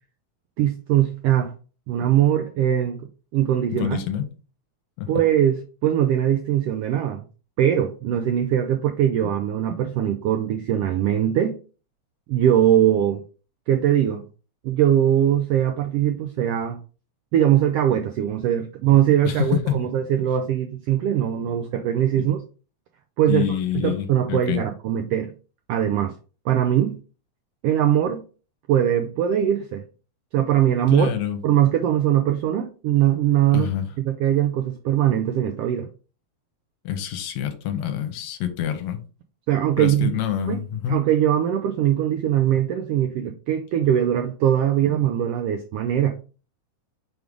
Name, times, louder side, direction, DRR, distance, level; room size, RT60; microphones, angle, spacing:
voice 1, 0.6-1.5 1.9-3.0 3.3-4.0 5.1-7.2 7.6-11.6 12.3-13.2 13.7-14.2 14.6-16.8 17.3-22.4 23.2-23.5 23.8-25.3 25.7-26.1 26.4-27.0 27.6-28.2 28.7-29.8 30.3-31.1 31.4-33.7 34.1-35.9 39.5-40.1 40.5-40.6 40.9-46.2, right 11 dB, 90° right, 1.3 m, -21 dB
voice 2, 3.7-4.3 5.0-5.1 19.2-19.8 22.2-22.4 23.3-24.6 30.9-31.4 33.5-33.9 36.9-39.0 39.8-41.0, left 10 dB, 75° left, 2.0 m, -26 dB
5.3 x 4.7 x 3.8 m
omnidirectional pair, 3.4 m